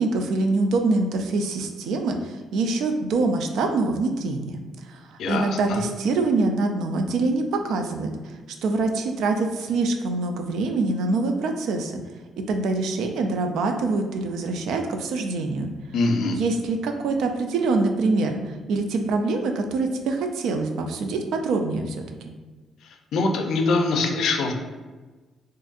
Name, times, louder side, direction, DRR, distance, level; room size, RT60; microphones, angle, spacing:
voice 1, 0.0-4.6 4.9-5.0 5.3-8.1 8.6-12.0 12.5-15.7 16.3-22.3, right 3 dB, 80° right, 5 dB, 0.4 m, -25 dB
voice 2, 5.2-5.8 15.9-16.4 23.1-24.5, left 3 dB, 75° left, 4 dB, 0.4 m, -23 dB
3.8 x 2.6 x 2.5 m, 1.3 s
cardioid pair, 90°, 0 cm